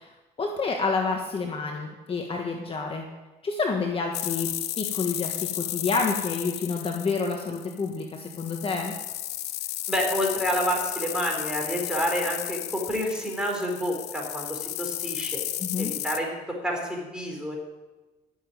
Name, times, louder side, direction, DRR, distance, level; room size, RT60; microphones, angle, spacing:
voice 1, 0.0-3.1 3.4-4.5 4.8-8.9 15.6-15.9, left 4 dB, 35° left, 2 dB, 1.5 m, -29 dB
sound 1, 4.1-16.2, left 14 dB, 80° left, 0.9 m, -33 dB
voice 2, 9.9-15.4 15.8-16.4 16.6-17.6, equal, 5° right, 0 dB, 4.7 m, -29 dB
14.0 x 7.2 x 9.4 m, 1.2 s
cardioid pair, 110°, 17 cm